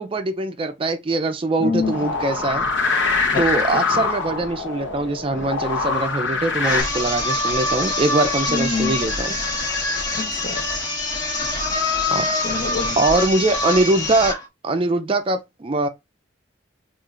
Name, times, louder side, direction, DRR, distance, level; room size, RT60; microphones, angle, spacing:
voice 1, 0.0-2.7 3.4-9.4 12.1-12.2 13.0-14.4 14.6-15.9, right 2 dB, 30° right, 0.4 m, -22 dB
voice 2, 1.6-2.0 3.3-4.0 8.5-9.0 10.1-10.6 12.4-13.0, left 4 dB, 50° left, 0.6 m, -26 dB
sound 1, 1.8-6.8, left 4 dB, 80° left, 0.9 m, -24 dB
sound 2, 6.6-14.4, left 2 dB, 20° left, 1.1 m, -24 dB
4.4 x 2.4 x 2.4 m
head